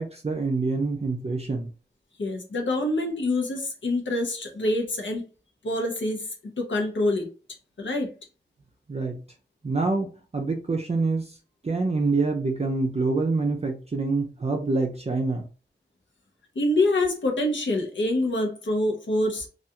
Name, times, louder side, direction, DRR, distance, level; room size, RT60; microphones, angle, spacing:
voice 1, 0.0-1.7 8.9-9.2 9.6-10.1 10.3-11.4 11.6-15.4, right 3 dB, 35° right, 2 dB, 0.4 m, -26 dB
voice 2, 2.2-5.2 5.6-6.2 6.6-7.3 7.8-8.1 16.6-19.5, left 1 dB, 85° left, 2 dB, 0.7 m, -25 dB
2.3 x 2.2 x 2.7 m, 0.34 s
wide cardioid pair, 50°, 19 cm